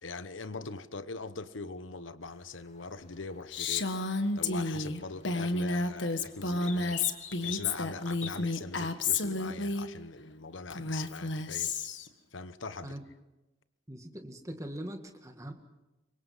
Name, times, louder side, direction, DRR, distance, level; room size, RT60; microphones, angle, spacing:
voice 1, 0.0-3.9 4.3-7.0 7.4-11.8 12.3-12.9, left 3 dB, 85° left, 1.1 m, -42 dB
sound 1, 2.2-8.3, left 7 dB, 35° left, 2.0 m, -48 dB
Female speech woman speaking, 3.5-9.9 10.7-12.1, left 3 dB, 70° left, 1.5 m, -31 dB
voice 2, 13.9-15.5, right 1 dB, 15° right, 2.0 m, -41 dB
27.0 x 23.5 x 5.7 m
head